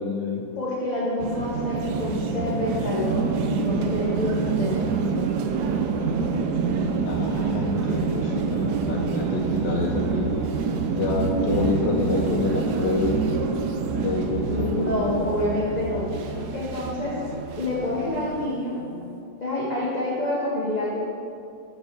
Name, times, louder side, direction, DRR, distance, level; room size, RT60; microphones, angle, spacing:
voice 1, 0.0-0.4 7.0-10.5 11.0-13.2 14.0-15.7, left 4 dB, 70° left, -2 dB, 1.2 m, -28 dB
voice 2, 0.6-4.8 14.5-16.1 16.5-17.2 17.6-18.8 19.4-21.0, left 1 dB, 40° left, -7 dB, 0.6 m, -27 dB
sound 1, 1.2-18.5, right 5 dB, 70° right, 1.0 m, -26 dB
sound 2, 4.1-19.2, equal, 50° right, 1.1 m, -46 dB
6.9 x 4.2 x 6.5 m, 2.5 s
omnidirectional pair, 2.1 m